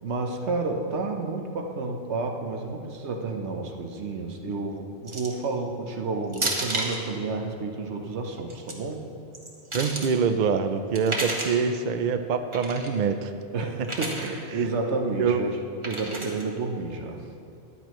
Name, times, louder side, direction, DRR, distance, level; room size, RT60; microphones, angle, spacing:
voice 1, 0.0-9.1 13.5-15.6 15.8-17.2, right 3 dB, 90° right, 3 dB, 1.3 m, -30 dB
sound 1, 5.1-5.4 6.3-7.0 8.4-8.7 9.3-10.1 10.9-11.6 12.5-12.9 13.8-14.3 15.8-16.4, right 2 dB, 30° right, 1.2 m, -31 dB
voice 2, 9.7-13.3 13.8-13.9 15.2-15.4, right 6 dB, 55° right, 8 dB, 0.6 m, -25 dB
13.5 x 10.0 x 3.1 m, 2.5 s
omnidirectional pair, 1.1 m